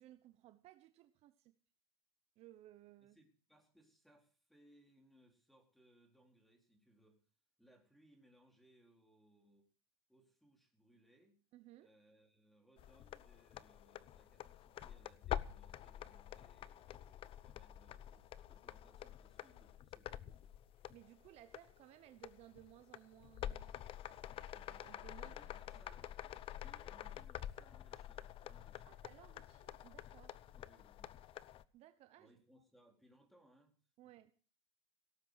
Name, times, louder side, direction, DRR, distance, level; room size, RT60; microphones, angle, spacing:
voice 1, 0.0-1.5 2.4-3.2 11.5-11.9 20.9-23.8 24.5-25.3 28.9-30.4 31.7-32.3 34.0-34.3, right 14 dB, 45° right, 10 dB, 1.0 m, -60 dB
voice 2, 3.1-7.2 7.6-9.7 10.1-11.4 11.8-20.4 25.2-29.0 30.5-31.2 32.2-33.7 34.0-34.1, right 1 dB, ahead, 3 dB, 4.1 m, -69 dB
sound 1, 12.8-31.6, left 11 dB, 40° left, 0.8 m, -48 dB
17.5 x 8.9 x 6.5 m, 0.41 s
supercardioid pair, 120°, 14 cm